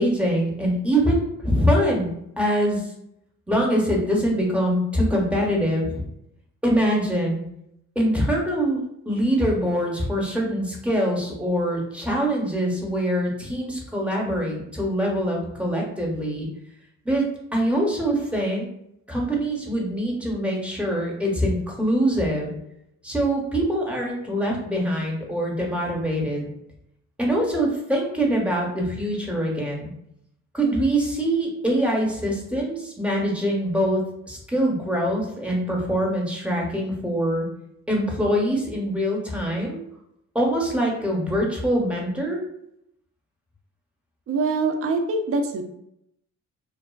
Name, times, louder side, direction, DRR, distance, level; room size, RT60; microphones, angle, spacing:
voice 1, 0.0-2.8 3.5-6.0 6.6-7.4 8.0-8.8 9.1-16.5 17.0-17.2 17.5-18.7 19.1-22.5 23.0-26.5 27.2-29.9 30.5-37.5 37.9-39.8 40.3-42.4, equal, 5° right, -2 dB, 0.7 m, -24 dB
voice 2, 44.3-45.6, right 3 dB, 50° right, 6 dB, 0.4 m, -24 dB
2.3 x 2.3 x 2.3 m, 0.78 s
cardioid pair, 90°, 30 cm